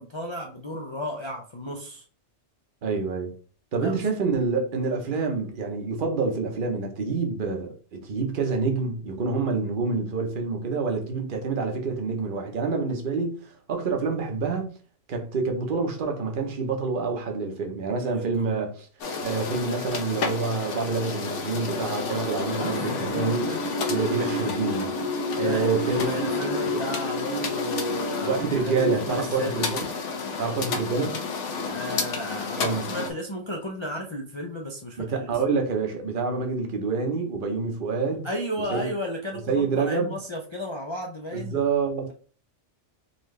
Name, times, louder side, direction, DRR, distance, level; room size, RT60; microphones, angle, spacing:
voice 1, 0.0-2.0 3.8-4.0 18.1-18.5 22.6-23.6 24.2-24.3 25.4-29.7 31.7-35.4 38.2-41.6, equal, 35° left, 0.5 m, -34 dB
voice 2, 2.8-3.3 3.7-14.7 15.1-18.9 19.2-23.5 23.9-24.9 25.4-26.2 26.5-26.7 28.3-29.9 30.4-31.2 32.5-33.0 35.0-38.3 38.7-38.9 39.5-40.1 41.3-42.1, right 4 dB, 50° right, 1.0 m, -27 dB
sound 1, 19.0-33.1, left 4 dB, 85° left, 1.1 m, -31 dB
sound 2, 23.1-29.0, left 1 dB, 75° right, 1.1 m, -31 dB
4.0 x 3.0 x 3.2 m
omnidirectional pair, 1.2 m